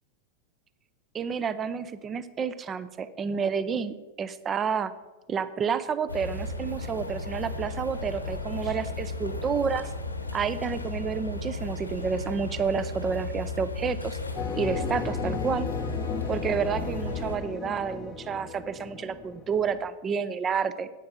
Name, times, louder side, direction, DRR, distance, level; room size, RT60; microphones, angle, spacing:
voice 1, 1.1-4.9 5.3-9.9 10.3-14.2 14.5-15.7 16.3-20.9, right 6 dB, 25° right, 15 dB, 0.6 m, -30 dB
sound 1, 6.1-17.4, left 3 dB, 85° left, 1.2 m, -34 dB
sound 2, 14.4-19.9, left 5 dB, 25° left, 0.7 m, -35 dB
10.5 x 8.9 x 5.3 m, 1.2 s
figure-of-eight pair, 90°, 0 cm